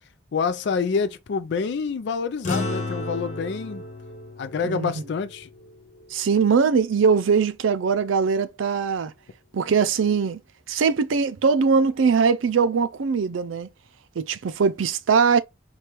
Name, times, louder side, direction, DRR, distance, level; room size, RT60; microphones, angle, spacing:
voice 1, 0.3-3.8 4.4-5.5, left 5 dB, 65° left, 0.4 m, -27 dB
sound 1, 2.4-7.1, left 2 dB, 40° left, 1.1 m, -34 dB
voice 2, 6.1-9.1 9.5-10.4 10.7-13.7 14.2-15.4, right 5 dB, 90° right, 0.4 m, -21 dB
4.4 x 2.3 x 3.2 m
head